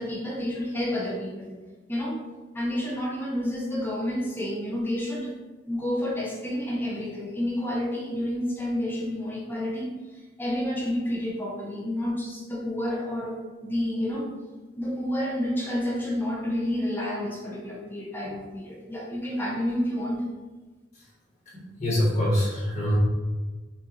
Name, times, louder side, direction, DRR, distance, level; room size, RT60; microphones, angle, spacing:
voice 1, 0.0-1.5 1.9-2.2 2.5-5.3 5.7-14.3 14.8-20.3, left 1 dB, 10° left, -3 dB, 0.7 m, -30 dB
voice 2, 21.5-23.0, equal, 45° left, -7 dB, 1.4 m, -25 dB
6.0 x 2.7 x 3.0 m, 1.3 s
head